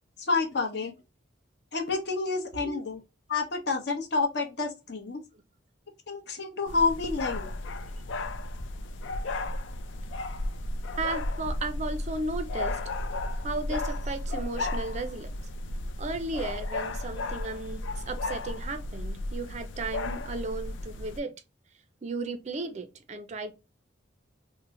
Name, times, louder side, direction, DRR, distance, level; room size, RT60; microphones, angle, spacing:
voice 1, 0.2-1.0 1.7-3.0 3.3-5.2 6.1-7.5, left 4 dB, 60° left, 0.8 m, -29 dB
sound 1, 6.7-21.2, left 2 dB, 80° left, 0.4 m, -34 dB
voice 2, 11.0-12.8 13.4-15.3 16.0-21.3 22.0-23.5, right 2 dB, 35° right, 0.4 m, -35 dB
3.0 x 2.1 x 3.6 m
head